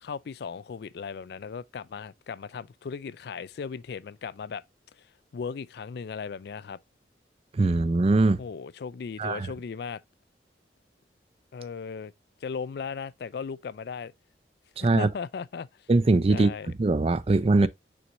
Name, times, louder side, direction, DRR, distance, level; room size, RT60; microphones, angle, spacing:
voice 1, 0.0-4.6 5.3-6.8 8.4-10.0 11.5-12.1 12.4-14.1 14.8-15.7 16.3-16.7 17.6-17.7, left 5 dB, 60° left, 0.4 m, -37 dB
voice 2, 7.5-8.4 9.2-9.5 14.8-15.1 15.9-16.5 16.8-17.7, right 3 dB, 35° right, 0.4 m, -21 dB
6.3 x 6.0 x 2.6 m
head